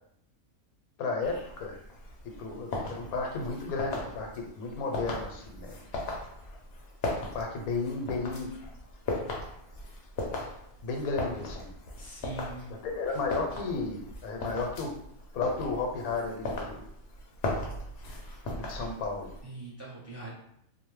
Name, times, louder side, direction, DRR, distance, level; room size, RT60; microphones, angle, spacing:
voice 1, 1.0-1.8 2.4-5.8 7.2-8.5 10.8-11.7 12.8-14.9 15.3-16.8 18.5-19.3, left 4 dB, 90° left, 2 dB, 1.1 m, -33 dB
sound 1, 1.2-19.4, left 2 dB, 60° left, 0.6 m, -38 dB
voice 2, 12.0-12.7 19.4-20.3, right 2 dB, 15° right, -7 dB, 0.6 m, -42 dB
2.7 x 2.0 x 3.0 m, 0.73 s
omnidirectional pair, 1.5 m